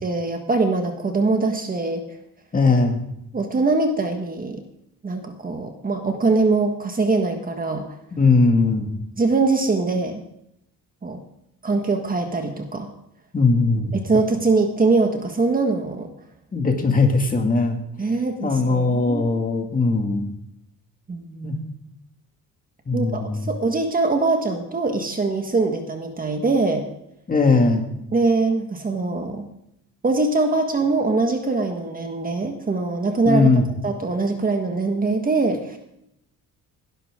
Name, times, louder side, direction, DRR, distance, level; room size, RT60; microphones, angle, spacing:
voice 1, 0.0-2.0 3.3-4.6 5.0-7.8 9.2-10.2 11.0-11.2 11.6-12.9 13.9-16.1 18.0-19.4 21.1-21.7 22.9-26.9 28.1-29.4 30.0-35.8, right 3 dB, 25° right, 4 dB, 1.5 m, -22 dB
voice 2, 2.5-3.0 8.2-8.9 13.3-13.9 16.5-17.8 18.4-20.2 21.4-21.6 22.9-23.5 27.3-27.8 33.3-33.6, left 3 dB, 25° left, 3 dB, 2.3 m, -19 dB
18.5 x 12.0 x 3.7 m, 0.79 s
cardioid pair, 135°, 34 cm